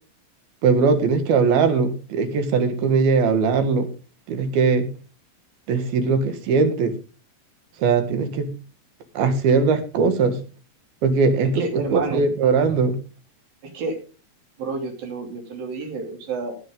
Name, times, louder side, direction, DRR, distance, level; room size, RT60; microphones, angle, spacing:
voice 1, 0.6-3.9 4.3-4.9 5.7-6.9 7.8-8.5 9.2-10.4 11.0-13.0, right 5 dB, 90° right, 8 dB, 3.6 m, -20 dB
voice 2, 11.6-12.2 13.6-14.0 14.6-16.6, right 3 dB, 70° right, 3 dB, 4.7 m, -30 dB
18.5 x 7.7 x 3.9 m, 0.34 s
omnidirectional pair, 4.2 m